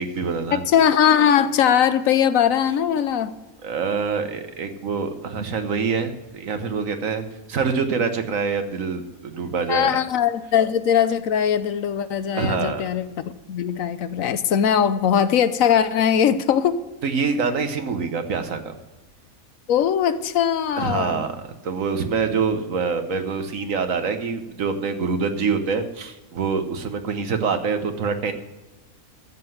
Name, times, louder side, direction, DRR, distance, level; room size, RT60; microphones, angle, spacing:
voice 1, 0.0-0.6 3.6-7.2 7.5-10.0 12.3-12.8 17.0-18.7 20.8-21.4 21.6-28.3, right 5 dB, 70° right, 8 dB, 1.5 m, -25 dB
voice 2, 0.5-3.3 9.7-16.8 19.7-21.2, left 8 dB, 75° left, 12 dB, 1.1 m, -20 dB
13.5 x 7.7 x 7.8 m, 1.1 s
omnidirectional pair, 1.5 m